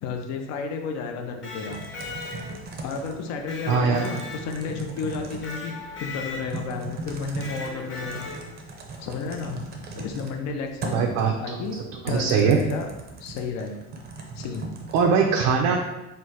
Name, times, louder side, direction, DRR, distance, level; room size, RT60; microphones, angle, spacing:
voice 1, 0.0-1.8 2.8-8.3 9.0-9.6 9.9-11.1 11.4-11.8 12.1-12.9 13.2-13.8 14.4-14.7, left 4 dB, 55° left, 4 dB, 0.5 m, -32 dB
Electric guitar, 1.3-2.8 3.5-4.9 5.4-6.7 7.4-8.6, left 3 dB, 35° left, 1.1 m, -38 dB
Typing, 1.7-15.1, right 3 dB, 30° right, 0.5 m, -38 dB
voice 2, 3.7-4.1 10.9-11.7 12.0-12.6 14.9-15.8, right 6 dB, 80° right, 1 dB, 0.6 m, -21 dB
4.4 x 2.1 x 4.6 m, 1.0 s
cardioid pair, 155°, 33 cm